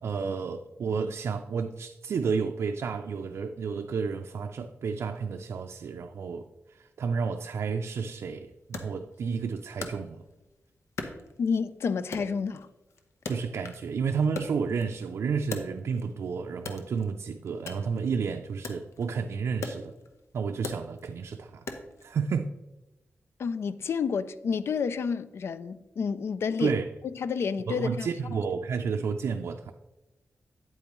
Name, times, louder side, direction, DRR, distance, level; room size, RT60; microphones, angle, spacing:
voice 1, 0.0-10.2 13.3-19.9 20.3-21.7 22.0-22.5 26.6-26.9 27.7-29.7, right 5 dB, 70° right, 0.4 m, -31 dB
Wood, 8.7-10.5 11.0-11.7 12.1-13.9 14.2-16.2 16.6-22.1, left 3 dB, 85° left, 0.9 m, -40 dB
voice 2, 11.4-12.7 23.4-26.7 27.2-28.1, left 5 dB, 65° left, 0.4 m, -29 dB
8.9 x 8.6 x 3.0 m
wide cardioid pair, 180°, 5 cm